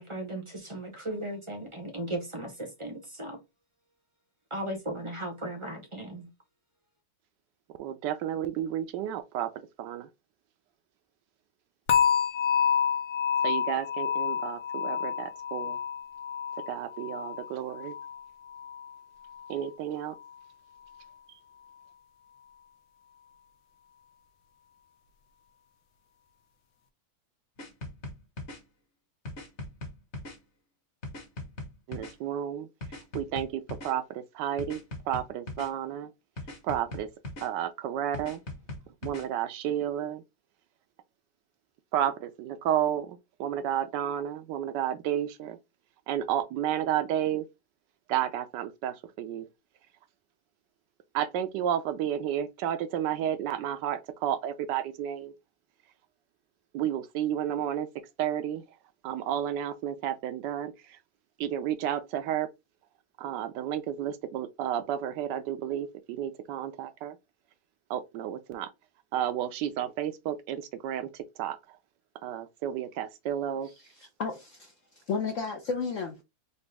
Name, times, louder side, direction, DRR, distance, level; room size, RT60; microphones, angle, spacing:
voice 1, 0.0-3.4 4.5-6.3, right 1 dB, 30° right, 0.5 m, -36 dB
voice 2, 7.8-9.5 9.8-10.1 13.4-15.8 16.7-18.0 19.5-20.1 31.9-32.7 33.1-36.1 36.6-37.1 37.4-38.4 39.0-40.2 41.9-45.6 46.1-47.4 48.1-49.5 51.1-55.3 56.7-57.9 58.2-58.6 59.0-60.7 61.4-62.5 63.2-67.1 67.9-68.7 69.1-71.6 72.2-73.7, right 10 dB, 75° right, 1.1 m, -31 dB
sound 1, 11.9-19.0 19.3-19.7 20.1-20.3, left 7 dB, 85° left, 1.4 m, -29 dB
sound 2, 27.6-28.6 29.3-30.4 31.0-32.1 32.8-33.9 34.6-35.7 36.4-37.5 38.1-39.3, left 2 dB, 45° left, 1.3 m, -39 dB
voice 3, 73.6-74.7 75.1-76.2, left 5 dB, 65° left, 0.8 m, -33 dB
4.1 x 2.5 x 3.3 m
omnidirectional pair, 2.0 m